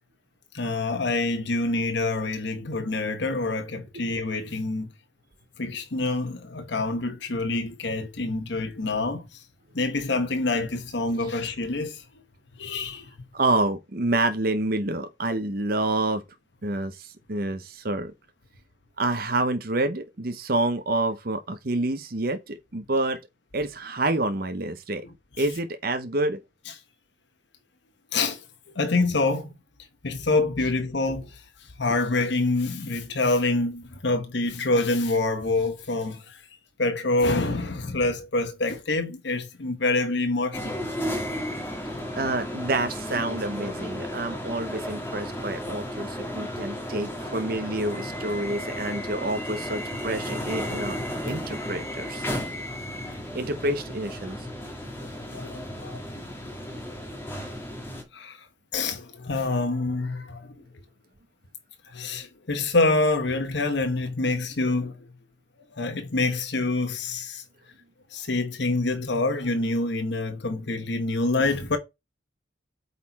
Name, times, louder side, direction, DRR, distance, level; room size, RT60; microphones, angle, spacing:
voice 1, 0.5-4.9 5.6-9.4 9.7-12.0 12.6-13.1 25.4-25.5 26.7-26.8 28.1-29.5 30.0-36.4 36.8-40.8 55.3-56.0 58.1-58.5 58.7-60.5 61.9-64.9 65.7-67.4 68.1-71.8, left 2 dB, 65° left, 1.1 m, -26 dB
voice 2, 13.3-16.2 16.6-18.1 19.0-23.2 23.5-25.0 25.4-26.4 42.2-51.0 51.2-52.2 53.3-54.4, right 2 dB, 50° right, 0.8 m, -28 dB
sound 1, 40.5-58.0, equal, 10° left, 1.8 m, -34 dB
8.5 x 4.3 x 4.2 m
head